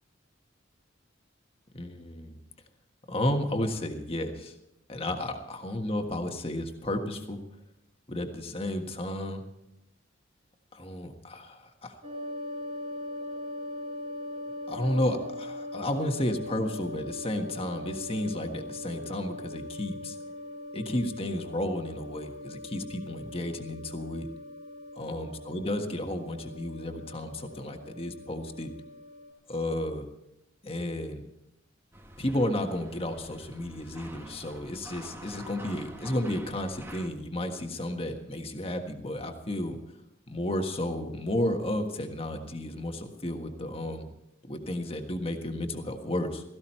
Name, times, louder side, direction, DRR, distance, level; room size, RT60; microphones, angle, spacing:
voice 1, 1.7-2.4 3.1-4.5 4.9-7.4 8.1-9.4 10.7-11.9 14.7-20.2 20.7-24.3 25.0-28.7 29.5-30.1 30.6-31.3 32.2-39.8 40.3-44.1 44.5-46.4, left 1 dB, 30° left, 5 dB, 1.6 m, -32 dB
sound 1, 12.0-29.3, left 1 dB, 35° right, 2.4 m, -41 dB
sound 2, 31.9-37.1, right 1 dB, 10° right, 1.1 m, -47 dB
17.0 x 15.5 x 4.4 m, 0.86 s
head